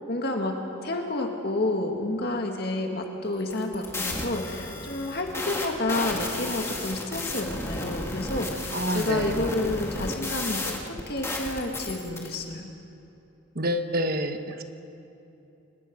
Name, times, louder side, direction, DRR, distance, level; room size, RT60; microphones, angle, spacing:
voice 1, 0.1-0.6 0.8-12.7, left 2 dB, 50° left, 2 dB, 1.9 m, -30 dB
sound 1, 3.4-12.4, left 2 dB, 10° left, 1.7 m, -33 dB
voice 2, 8.7-9.5 13.5-14.6, right 1 dB, 45° right, 7 dB, 1.2 m, -28 dB
29.5 x 18.5 x 5.3 m, 2.9 s
head